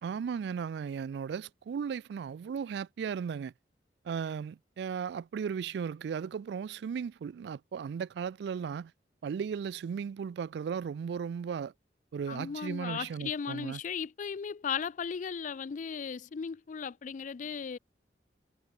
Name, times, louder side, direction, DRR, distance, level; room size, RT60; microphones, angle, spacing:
voice 1, 0.0-3.5 4.0-8.9 9.2-11.7 12.1-13.8, right 7 dB, 70° right, 0.3 m, -36 dB
voice 2, 12.3-17.8, left 6 dB, 45° left, 0.4 m, -36 dB
head